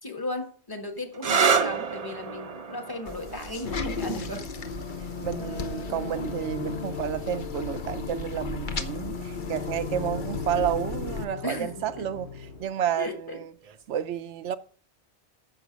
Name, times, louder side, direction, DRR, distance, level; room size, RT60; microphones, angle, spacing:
voice 1, 0.0-4.5 11.4-12.1 13.0-13.4, left 2 dB, 20° left, 1.3 m, -36 dB
sound 1, 1.1-8.6 9.6-10.1 13.6-14.0, right 6 dB, 45° right, 0.6 m, -31 dB
sound 2, 3.1-11.2, left 3 dB, 50° left, 1.0 m, -35 dB
sound 3, 4.6-12.6, left 7 dB, 70° left, 1.6 m, -39 dB
voice 2, 5.2-13.5 13.9-14.6, right 10 dB, 85° right, 1.0 m, -31 dB
10.5 x 7.3 x 5.2 m
omnidirectional pair, 1.2 m